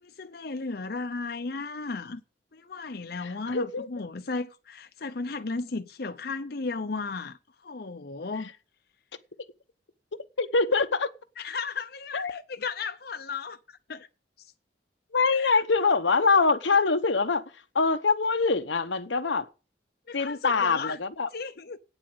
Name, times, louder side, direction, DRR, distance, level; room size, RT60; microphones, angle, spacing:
voice 1, 0.0-2.2 2.5-8.5 11.4-14.1 14.4-14.5 15.3-15.6 20.1-21.0 21.3-21.8, left 4 dB, 55° left, 0.7 m, -35 dB
voice 2, 3.2-3.9 10.4-11.1 12.1-12.4 15.1-17.4 17.7-19.5 20.1-21.3, left 4 dB, 90° left, 1.0 m, -24 dB
9.0 x 7.5 x 7.8 m
head